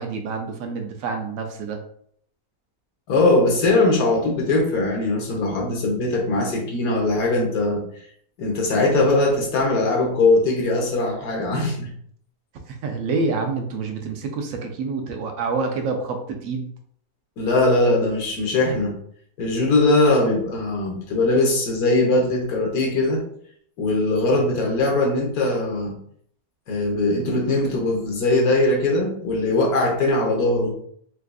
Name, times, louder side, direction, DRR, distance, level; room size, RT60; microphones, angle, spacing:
voice 1, 0.0-1.8 12.8-16.7, right 4 dB, 70° right, 4 dB, 0.9 m, -27 dB
voice 2, 3.1-7.8 8.4-11.9 17.4-18.9 19.4-23.2 23.8-25.9 26.7-30.7, left 2 dB, 90° left, 0 dB, 1.4 m, -20 dB
4.3 x 2.4 x 2.3 m, 0.64 s
omnidirectional pair, 1.5 m